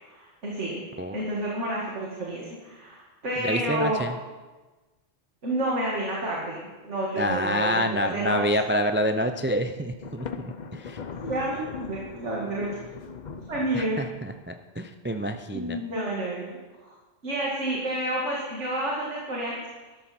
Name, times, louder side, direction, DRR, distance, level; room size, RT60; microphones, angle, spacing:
voice 1, 0.1-0.8 1.1-4.0 5.4-8.4 11.2-12.7 13.5-14.0 15.5-16.5 16.8-16.9 17.2-19.6, right 1 dB, 90° right, -4 dB, 2.5 m, -30 dB
voice 2, 3.4-4.1 7.2-11.0 13.7-15.8, equal, 20° right, 7 dB, 0.3 m, -27 dB
Thunder, 10.0-14.6, left 5 dB, 45° left, 0.7 m, -40 dB
13.0 x 12.5 x 4.4 m, 1.2 s
omnidirectional pair, 1.2 m